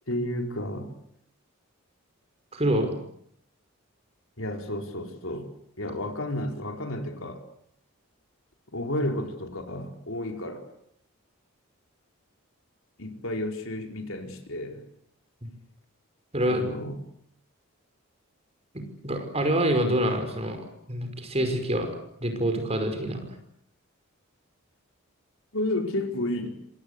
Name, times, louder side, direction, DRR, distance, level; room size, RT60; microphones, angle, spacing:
voice 1, 0.1-0.9 4.4-5.5 5.8-7.4 8.7-10.6 13.0-14.8 16.5-17.0 25.5-26.5, left 1 dB, 70° left, 4 dB, 4.6 m, -31 dB
voice 2, 2.5-2.9 16.3-16.6 18.7-21.9 22.2-23.2, right 1 dB, 30° right, 6 dB, 5.5 m, -26 dB
27.0 x 25.0 x 8.4 m, 0.69 s
head